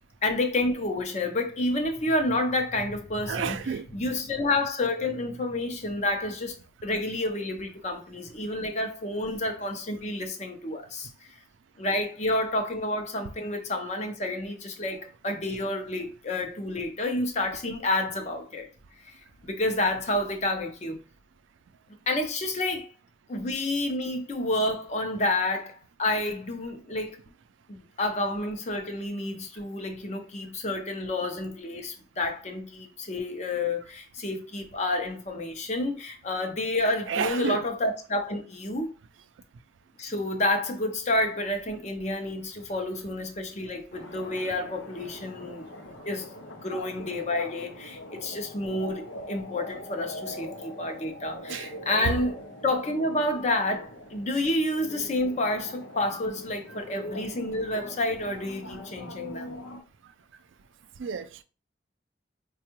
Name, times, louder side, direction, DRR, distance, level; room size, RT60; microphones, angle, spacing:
voice 1, 0.2-3.6 3.9-6.5 6.8-11.1 11.8-18.7 19.0-19.1 19.4-21.0 22.1-22.9 23.3-27.2 27.7-38.9 40.0-45.7 46.1-46.3 46.6-52.3 52.6-59.5, left 2 dB, 35° left, 0.6 m, -29 dB
voice 2, 3.3-3.9 37.1-37.7 51.5-51.7 52.0-52.2 61.0-61.4, right 6 dB, 85° right, 0.4 m, -30 dB
sound 1, 43.9-59.8, left 1 dB, 90° left, 0.6 m, -42 dB
4.4 x 2.3 x 2.9 m
head